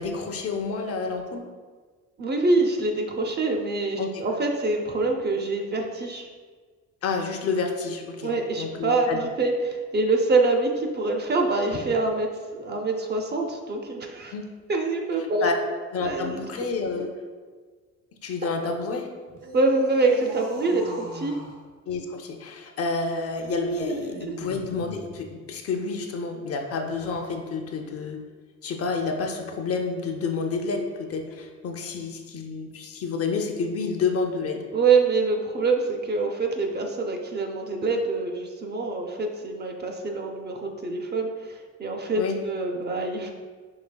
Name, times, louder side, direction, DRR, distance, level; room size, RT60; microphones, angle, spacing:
voice 1, 0.0-1.5 4.0-4.2 7.0-9.2 14.3-14.4 15.4-15.5 15.9-17.1 18.2-19.1 21.9-28.2 28.6-34.6 42.2-42.4, left 4 dB, 50° left, 3 dB, 0.5 m, -29 dB
voice 2, 2.2-6.3 8.2-14.3 14.7-15.5 16.0-16.4 16.9-17.0 19.5-21.4 23.9-24.3 34.7-43.3, right 3 dB, 35° right, 2 dB, 0.5 m, -25 dB
sound 1, 19.3-21.6 23.4-25.2 26.8-27.4, right 1 dB, 60° right, 1.2 m, -37 dB
4.9 x 3.1 x 2.2 m, 1.5 s
cardioid pair, 90°, 30 cm